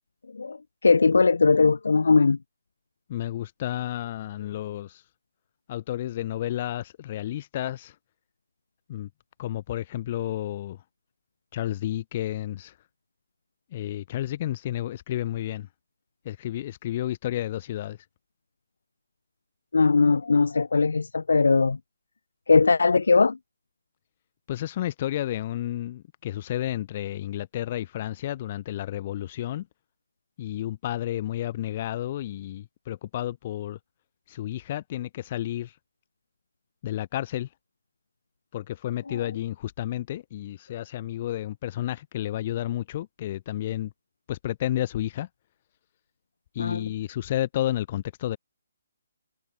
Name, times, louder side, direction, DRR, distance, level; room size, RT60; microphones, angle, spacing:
voice 1, 0.3-2.4 19.7-21.8 22.5-23.4 39.1-39.2 46.6-46.8, left 4 dB, 85° left, 1.0 m, -20 dB
voice 2, 3.1-5.0 5.7-7.9 8.9-9.1 9.4-10.8 11.5-12.7 13.7-15.7 16.2-18.0 24.5-29.7 30.4-33.8 34.3-35.7 36.8-37.5 38.5-43.9 44.3-45.3 46.5-48.4, left 13 dB, 35° left, 0.8 m, -31 dB
hypercardioid pair, 160°, 0 cm